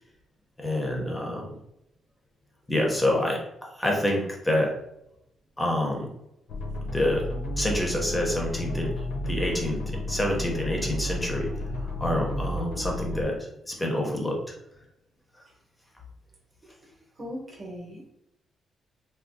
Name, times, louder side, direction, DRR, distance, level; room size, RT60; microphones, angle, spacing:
voice 1, 0.6-1.5 2.7-3.4 3.7-4.7 5.6-6.1 6.9-7.2 7.6-8.9 9.3-11.5 11.8-13.4 13.7-14.4, left 1 dB, 10° left, 0 dB, 0.5 m, -27 dB
sound 1, 6.5-13.2, left 1 dB, 85° left, 0.5 m, -32 dB
voice 2, 17.2-18.1, equal, 25° right, -3 dB, 0.8 m, -38 dB
3.4 x 2.2 x 2.5 m, 0.80 s
cardioid pair, 175°, 0 cm